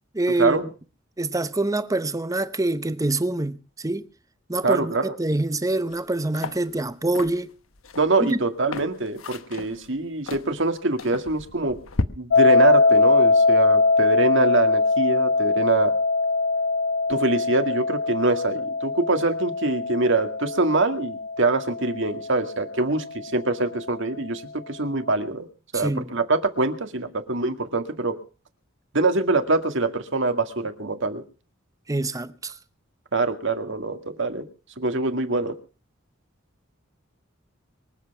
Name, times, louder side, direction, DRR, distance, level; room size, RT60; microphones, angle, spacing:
voice 1, 0.1-0.7 1.2-4.1 4.5-7.5 8.2-8.4 25.7-26.1 31.9-32.5, right 2 dB, 15° right, 0.8 m, -25 dB
voice 2, 4.6-5.1 8.0-11.8 12.2-15.9 17.1-25.5 25.7-28.1 28.9-31.2 33.1-34.5 34.8-35.5, right 3 dB, 65° right, 2.0 m, -24 dB
sound 1, 5.9-6.0 6.3-12.0, left 3 dB, 85° left, 1.1 m, -34 dB
sound 2, 12.3-23.2, left 3 dB, 70° left, 1.3 m, -22 dB
24.0 x 8.1 x 5.9 m
head